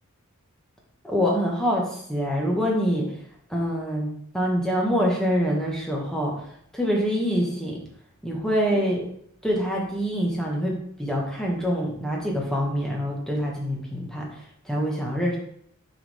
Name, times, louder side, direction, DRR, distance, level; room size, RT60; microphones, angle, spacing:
voice 1, 1.0-3.1 3.5-6.4 6.7-7.8 8.2-9.0 9.4-14.3 14.6-15.4, equal, 5° left, -2 dB, 1.5 m, -25 dB
6.9 x 4.8 x 3.6 m, 0.68 s
head